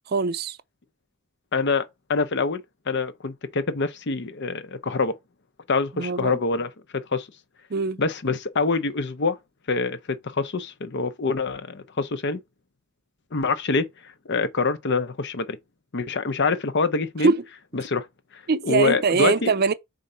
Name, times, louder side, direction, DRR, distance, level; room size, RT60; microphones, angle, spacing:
voice 1, 0.1-0.6 5.9-6.4 7.7-8.0 17.2-17.4 18.5-19.7, right 4 dB, 45° right, 0.5 m, -22 dB
voice 2, 1.5-5.1 5.7-6.7 7.1-7.3 8.0-9.4 9.7-12.4 13.3-15.6 15.9-17.3 17.7-18.1 18.3-19.5, left 4 dB, 55° left, 0.7 m, -25 dB
4.4 x 3.8 x 5.5 m
head